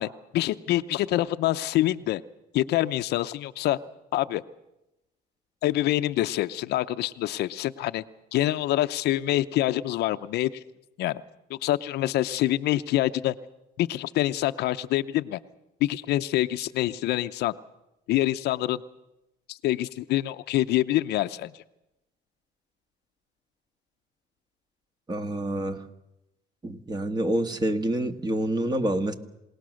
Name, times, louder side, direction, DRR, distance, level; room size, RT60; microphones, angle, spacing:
voice 1, 0.0-2.2 2.5-3.8 4.1-4.4 5.6-8.0 8.3-10.5 11.0-11.2 11.5-13.3 13.8-15.4 15.8-17.5 18.1-18.8 19.5-21.5, left 15 dB, 75° left, 12 dB, 0.7 m, -26 dB
voice 2, 25.1-25.8 26.6-29.1, right 1 dB, 25° right, 7 dB, 1.6 m, -27 dB
27.5 x 18.5 x 6.4 m, 0.91 s
cardioid pair, 110°, 17 cm